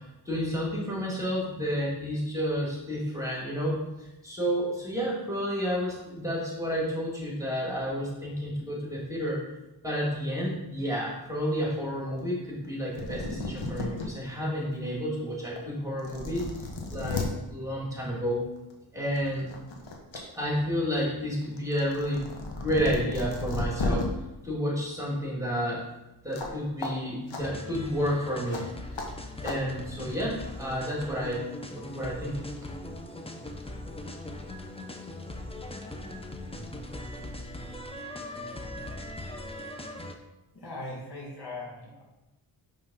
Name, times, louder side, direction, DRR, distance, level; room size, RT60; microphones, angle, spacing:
voice 1, 0.0-9.4 9.8-18.5 18.9-19.5 20.1-22.3 22.6-24.1 24.4-25.8 26.2-28.7 29.4-32.4, equal, 5° right, -5 dB, 2.2 m, -31 dB
sound 1, 12.7-12.8 12.9-14.1 14.6-14.7 15.6-15.7 16.0-17.3 18.6-18.7 19.1-20.2 20.5-24.0 26.3-26.5 26.8-26.9 27.3-27.4 28.5-28.6 29.0-29.1 29.4-29.6, left 3 dB, 70° left, 1.1 m, -34 dB
sound 2, 27.4-40.1, left 1 dB, 15° left, 0.6 m, -40 dB
voice 2, 40.5-42.0, left 2 dB, 55° left, -5 dB, 2.1 m, -39 dB
5.4 x 3.7 x 5.5 m, 0.99 s
cardioid pair, 60°, 46 cm